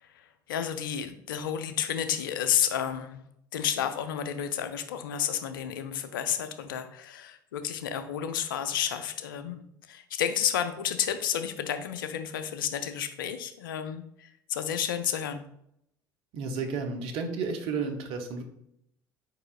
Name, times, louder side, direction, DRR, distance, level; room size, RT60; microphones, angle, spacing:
voice 1, 0.0-3.2 3.5-15.4, left 9 dB, 80° left, 10 dB, 0.4 m, -31 dB
voice 2, 16.3-18.4, right 4 dB, 60° right, 5 dB, 0.8 m, -32 dB
4.8 x 4.7 x 2.3 m, 0.74 s
hypercardioid pair, 60°, 11 cm